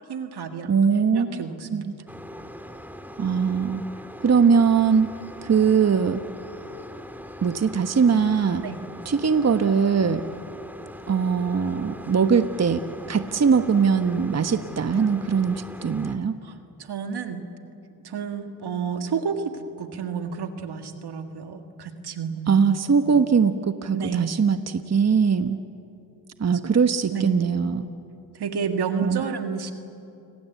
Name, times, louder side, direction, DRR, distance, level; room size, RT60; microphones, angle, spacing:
voice 1, 0.1-0.7 1.1-1.9 8.6-8.8 16.4-16.5 16.8-17.4 18.0-22.6 23.9-24.3 26.6-26.7 27.1-27.4 28.3-29.7, right 6 dB, 75° right, 6 dB, 2.1 m, -30 dB
voice 2, 0.7-1.4 1.7-1.9 3.2-3.8 4.2-5.1 5.4-6.2 7.4-8.6 9.0-10.2 11.1-16.4 22.5-25.6 26.4-27.9 29.0-29.2, right 6 dB, 40° right, 9 dB, 1.1 m, -21 dB
sound 1, 2.1-16.2, equal, 5° right, 2.2 m, -41 dB
29.0 x 21.5 x 8.3 m, 2.7 s
cardioid pair, 55°, 39 cm